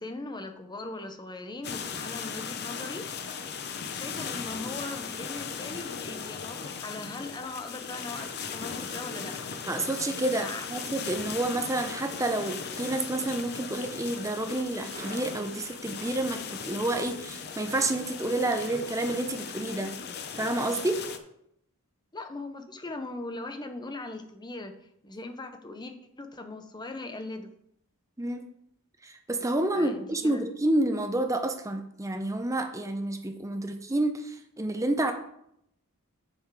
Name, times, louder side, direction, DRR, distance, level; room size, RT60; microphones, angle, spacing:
voice 1, 0.0-3.1 3.9-9.5 10.3-10.7 22.1-24.7 25.0-27.5 29.7-30.4, left 2 dB, 20° left, 6 dB, 0.8 m, -39 dB
sound 1, 1.6-21.2, left 6 dB, 50° left, 0.7 m, -38 dB
sound 2, 6.6-6.8 8.1-9.8 11.9-13.1 14.5-14.6 14.8-16.4 18.5-19.6, right 2 dB, 40° right, 2.0 m, -49 dB
voice 2, 9.7-19.9 20.4-21.1 28.2-28.5 29.0-35.1, right 1 dB, 15° right, 6 dB, 0.7 m, -29 dB
7.1 x 6.7 x 4.8 m, 0.74 s
head